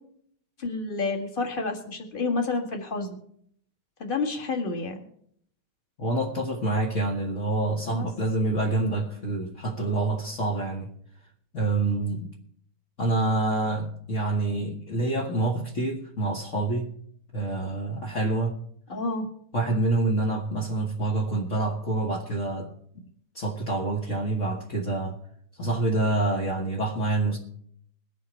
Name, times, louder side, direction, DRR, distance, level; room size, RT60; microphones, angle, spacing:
voice 1, 0.6-3.2 4.0-5.0 7.9-8.1 18.9-19.3, left 3 dB, 25° left, 1.4 m, -29 dB
voice 2, 6.0-10.9 11.5-12.3 13.0-16.9 17.3-18.6 19.5-22.7 23.3-25.2 25.6-27.4, right 2 dB, 45° left, 1.0 m, -27 dB
22.0 x 7.5 x 4.5 m
omnidirectional pair, 3.5 m